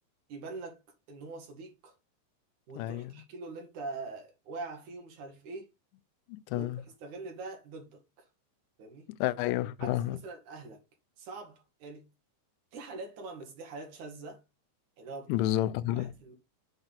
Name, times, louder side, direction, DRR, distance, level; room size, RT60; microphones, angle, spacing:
voice 1, 0.3-0.8 1.1-1.9 2.7-5.7 6.5-6.7 7.0-8.3 8.8-9.1 9.8-10.8 11.2-12.1 12.7-14.4 15.0-15.5 15.9-16.4, right 3 dB, 55° right, 2.6 m, -43 dB
voice 2, 2.8-3.1 6.3-6.8 9.2-10.2 15.3-16.1, left 14 dB, 85° left, 2.9 m, -30 dB
7.8 x 5.2 x 4.1 m
omnidirectional pair, 5.4 m